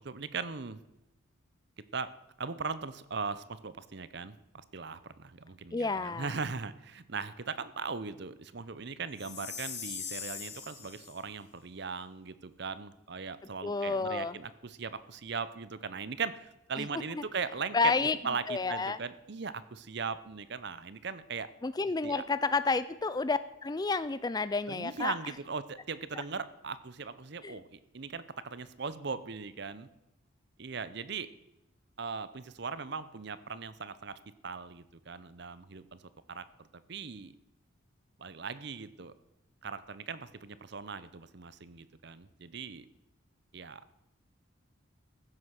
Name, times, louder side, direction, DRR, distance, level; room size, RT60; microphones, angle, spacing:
voice 1, 0.0-0.8 1.9-2.1 2.4-21.5 22.0-22.2 24.7-29.9 30.6-31.3 32.0-34.2 34.4-36.0 36.3-36.4 36.9-37.3 38.2-39.1 39.6-42.9 43.5-43.8, right 5 dB, 55° right, 15 dB, 0.7 m, -39 dB
voice 2, 5.7-6.3 13.6-14.4 16.8-16.9 17.1-17.2 17.7-18.2 18.5-19.0 21.6-25.1 26.1-26.2 27.4-27.6, left 4 dB, 20° left, 15 dB, 0.3 m, -30 dB
Chime, 9.2-11.2, left 7 dB, 50° left, 2.4 m, -41 dB
15.0 x 8.0 x 6.0 m, 0.90 s
head